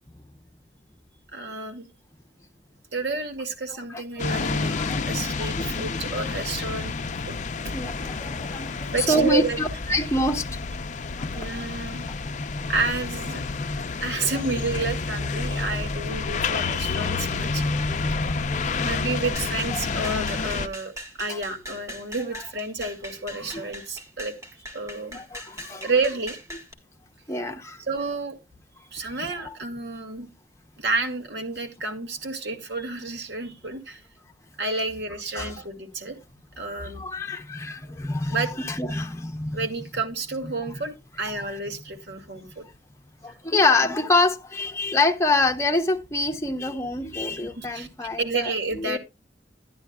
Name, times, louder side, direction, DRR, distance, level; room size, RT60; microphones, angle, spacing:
voice 1, 1.3-1.9 2.9-4.8 5.1-6.9 7.2-7.4 7.7-7.8 8.9-9.6 11.3-12.0 12.7-13.4 14.0-17.6 18.8-20.9 21.2-25.2 25.8-26.4 27.9-28.4 28.9-30.3 30.8-34.0 34.6-36.2 36.6-37.0 38.3-38.5 39.5-42.7 43.7-43.8 47.6-49.0, right 3 dB, 70° right, 1.9 m, -30 dB
sound 1, 4.2-20.7, left 4 dB, 45° left, 0.6 m, -29 dB
voice 2, 4.4-6.0 7.7-10.5 11.2-11.5 18.1-19.1 19.7-19.9 21.3-21.4 23.3-23.6 25.1-25.9 27.3-27.8 29.4-29.5 35.3-35.6 36.8-39.7 43.2-49.0, left 2 dB, 15° left, 0.9 m, -26 dB
sound 2, 19.3-26.7, equal, 20° right, 1.8 m, -40 dB
11.5 x 10.5 x 2.3 m
head